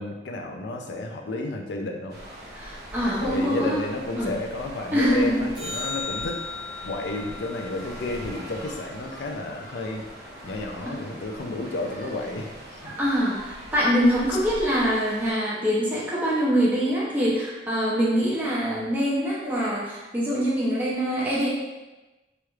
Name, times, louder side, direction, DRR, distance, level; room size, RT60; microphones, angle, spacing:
voice 1, 0.0-2.2 3.2-6.4 6.8-10.0 10.4-12.5 12.8-12.9, left 2 dB, 75° left, 3 dB, 0.4 m, -31 dB
sound 1, 2.1-15.3, equal, 55° right, 0.7 m, -42 dB
voice 2, 2.5-3.8 4.2-4.3 4.9-5.4 10.8-11.0 13.0-21.5, equal, 10° right, -7 dB, 0.7 m, -24 dB
sound 2, 5.6-10.0 16.6-16.7, left 4 dB, 25° left, 0.7 m, -38 dB
3.1 x 3.0 x 2.4 m, 1.1 s
head